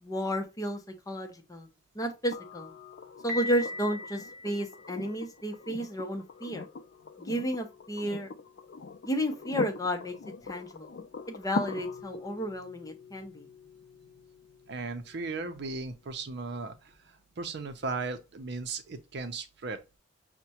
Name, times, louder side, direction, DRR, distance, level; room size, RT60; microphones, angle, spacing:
voice 1, 0.0-0.8 1.1-1.7 1.9-2.7 3.2-6.6 7.2-8.3 9.0-10.2 10.5-10.9 11.3-13.4, equal, 20° left, 0.6 m, -32 dB
sound 1, 2.3-16.3 18.0-18.1, left 4 dB, 60° left, 0.5 m, -43 dB
Piano, 3.3-5.2, left 1 dB, 45° right, 1.0 m, -38 dB
voice 2, 14.7-19.8, right 3 dB, 60° right, 0.6 m, -37 dB
5.7 x 2.1 x 2.8 m
head